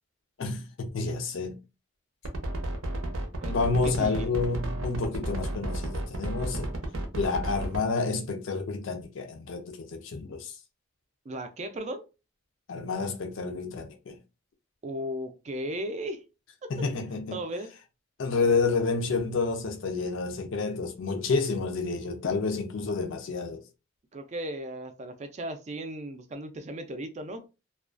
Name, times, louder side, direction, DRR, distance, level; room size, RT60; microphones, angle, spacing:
voice 1, 0.4-1.6 3.5-6.7 7.1-10.5 12.7-14.2 16.7-17.4 18.2-23.6, left 4 dB, 65° left, 0.4 m, -29 dB
sound 1, 2.2-7.8, right 1 dB, 85° right, 0.6 m, -32 dB
voice 2, 3.4-4.3 11.3-12.1 14.8-16.2 16.6-16.7 17.3-17.7 24.1-27.5, right 1 dB, 35° right, 0.4 m, -36 dB
2.3 x 2.2 x 2.4 m
head